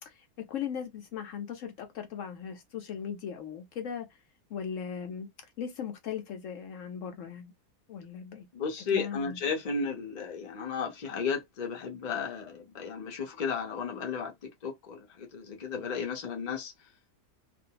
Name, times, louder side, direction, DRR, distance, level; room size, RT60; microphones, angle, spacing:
voice 1, 0.0-4.2 4.5-5.3 5.6-7.5 7.9-8.5 8.9-9.4, left 8 dB, 65° left, 0.9 m, -38 dB
voice 2, 8.5-16.7, left 5 dB, 40° left, 0.6 m, -34 dB
2.5 x 2.3 x 2.8 m
omnidirectional pair, 1.5 m